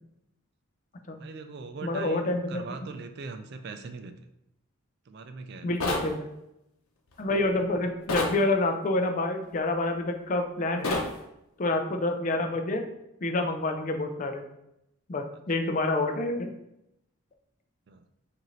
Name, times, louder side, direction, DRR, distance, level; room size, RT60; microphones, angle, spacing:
voice 1, 1.2-4.1 5.1-5.7 17.9-18.0, right 4 dB, 50° right, 7 dB, 0.4 m, -40 dB
voice 2, 1.8-2.9 5.6-6.3 7.2-11.0 11.6-12.9 13.2-14.4 15.1-16.5, left 2 dB, 35° left, 5 dB, 0.5 m, -28 dB
sound 1, 5.8-6.1 8.1-8.4 10.8-11.1, left 2 dB, 85° left, 0.8 m, -28 dB
6.4 x 2.6 x 3.2 m, 0.85 s
head